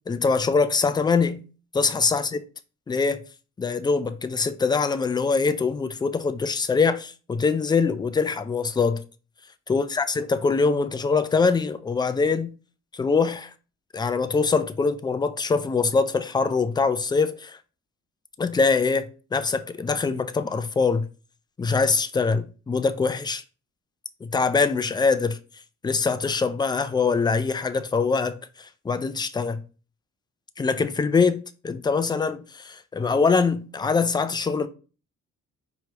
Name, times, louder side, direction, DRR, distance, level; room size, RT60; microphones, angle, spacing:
voice 1, 0.1-1.4 1.7-2.4 2.9-3.2 3.6-9.0 9.7-12.5 12.9-13.5 13.9-17.6 18.4-21.1 21.6-23.4 24.2-25.4 25.8-29.6 30.6-34.7, left 4 dB, 15° left, 0.3 m, -23 dB
4.5 x 3.1 x 2.9 m
cardioid pair, 90°, 30 cm